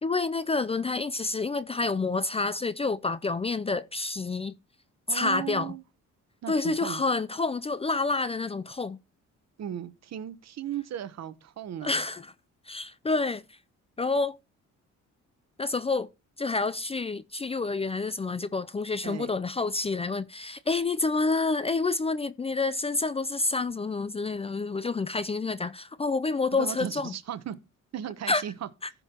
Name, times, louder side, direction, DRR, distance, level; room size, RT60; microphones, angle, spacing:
voice 1, 0.0-4.6 5.1-5.7 6.5-9.0 11.8-12.3 12.7-13.4 14.0-14.4 15.6-16.1 16.4-27.1 28.3-28.4 28.8-28.9, left 3 dB, 20° left, 0.4 m, -28 dB
voice 2, 5.1-5.8 6.4-7.0 9.6-12.0 19.0-19.3 26.5-27.6 27.9-28.7, right 10 dB, 60° right, 1.0 m, -36 dB
15.0 x 5.5 x 2.9 m
cardioid pair, 90°, 30 cm